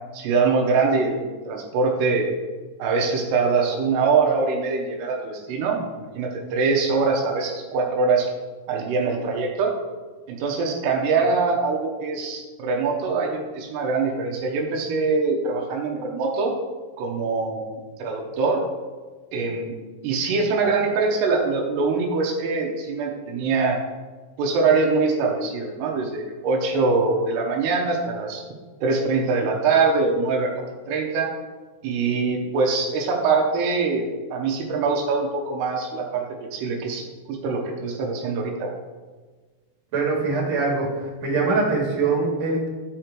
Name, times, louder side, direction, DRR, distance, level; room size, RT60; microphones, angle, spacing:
voice 1, 0.1-2.3 2.8-8.3 8.7-9.7 10.3-16.5 17.0-18.6 19.3-19.7 20.0-23.8 24.4-28.4 28.8-30.5 30.9-31.3 31.8-38.7, right 4 dB, 85° right, 0 dB, 3.0 m, -23 dB
voice 2, 39.9-40.9 41.2-42.7, right 3 dB, 50° right, -2 dB, 2.7 m, -22 dB
11.0 x 5.1 x 4.5 m, 1.4 s
omnidirectional pair, 4.7 m